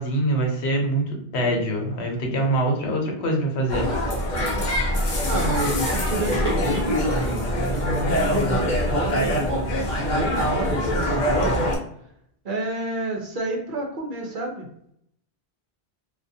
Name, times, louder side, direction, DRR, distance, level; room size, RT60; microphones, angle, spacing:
voice 1, 0.0-3.9, right 1 dB, 90° left, 1 dB, 1.0 m, -24 dB
sound 1, 3.7-11.8, equal, 50° left, 0.7 m, -23 dB
voice 2, 5.2-7.4 7.7-9.6 9.9-11.8 12.4-14.7, right 2 dB, 55° right, 1 dB, 0.7 m, -29 dB
2.4 x 2.3 x 2.6 m, 0.72 s
omnidirectional pair, 1.1 m